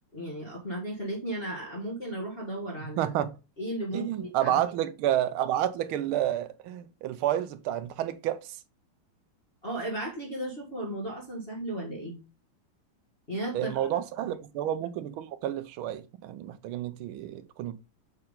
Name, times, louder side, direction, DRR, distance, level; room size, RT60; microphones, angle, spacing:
voice 1, 0.1-3.1 3.6-4.6 9.6-12.2 13.3-13.9 14.2-14.3, right 1 dB, 30° left, 1.9 m, -35 dB
voice 2, 2.8-3.4 3.9-8.6 13.5-17.7, right 11 dB, 80° right, 1.4 m, -30 dB
6.5 x 4.6 x 3.7 m
omnidirectional pair, 2.4 m